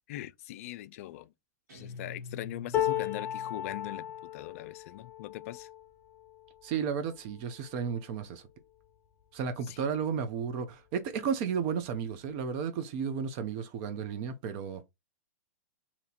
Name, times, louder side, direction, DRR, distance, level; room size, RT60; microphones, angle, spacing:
voice 1, 0.1-1.3 1.7-5.7 9.7-9.8, left 15 dB, 55° left, 0.4 m, -41 dB
Guitar, 1.7-4.3, left 4 dB, 80° right, 1.6 m, -46 dB
sound 1, 2.7-8.9 9.5-9.7 10.0-10.7 11.7-11.8, left 11 dB, 20° left, 1.0 m, -37 dB
voice 2, 6.6-8.4 9.3-14.8, right 7 dB, 45° right, 0.6 m, -33 dB
2.9 x 2.7 x 4.2 m
hypercardioid pair, 120°, 9 cm